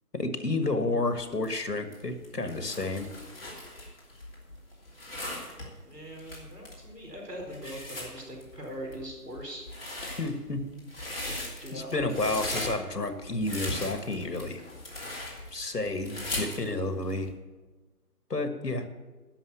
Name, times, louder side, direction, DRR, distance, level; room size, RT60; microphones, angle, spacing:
voice 1, 0.1-3.1 10.2-10.6 11.7-14.6 15.5-17.3 18.3-18.9, left 2 dB, 80° left, 9 dB, 1.7 m, -30 dB
sound 1, 1.1-17.3, left 1 dB, 35° left, 3.0 m, -39 dB
voice 2, 5.9-9.6 11.6-12.2, equal, 85° right, 0 dB, 4.7 m, -41 dB
11.0 x 6.3 x 8.3 m, 1.2 s
figure-of-eight pair, 165°, 47 cm